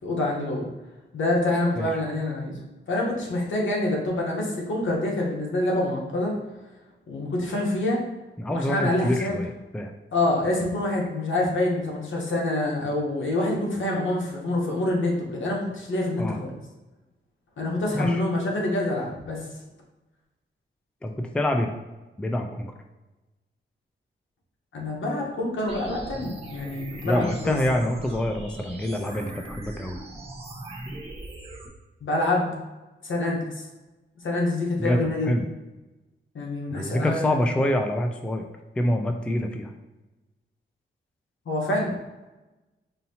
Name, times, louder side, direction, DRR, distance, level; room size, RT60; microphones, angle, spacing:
voice 1, 0.0-0.6 1.1-2.6 2.9-6.4 7.1-8.0 8.5-9.4 10.1-16.6 17.6-19.5 24.7-27.6 32.0-32.5 33.0-33.6 34.2-35.3 36.3-37.4 41.5-42.0, left 1 dB, 75° left, -2 dB, 1.1 m, -26 dB
voice 2, 8.4-9.9 16.2-16.4 17.9-18.2 21.0-21.7 22.2-22.7 27.0-30.0 34.8-35.5 36.7-38.5 38.8-39.7, left 1 dB, 5° left, 4 dB, 0.3 m, -26 dB
sound 1, 25.7-31.7, right 2 dB, 30° right, 0.9 m, -39 dB
5.5 x 2.7 x 2.8 m, 1.1 s
wide cardioid pair, 110°, 20 cm